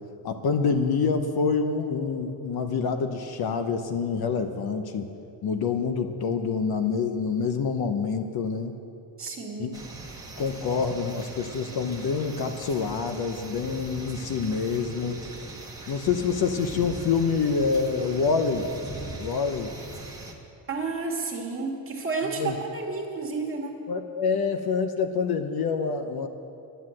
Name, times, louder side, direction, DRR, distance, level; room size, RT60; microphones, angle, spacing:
voice 1, 0.2-5.1 5.4-8.8 9.6-9.7 10.4-15.2 15.9-18.7 19.2-19.7 22.4-22.6 23.9-26.3, left 5 dB, 55° left, 7 dB, 0.8 m, -26 dB
voice 2, 9.2-9.8 20.7-23.8, right 4 dB, 30° right, 0 dB, 1.9 m, -31 dB
sound 1, 9.7-20.3, right 2 dB, 10° right, 1.4 m, -40 dB
10.5 x 9.6 x 7.6 m, 2.6 s
cardioid pair, 145°, 44 cm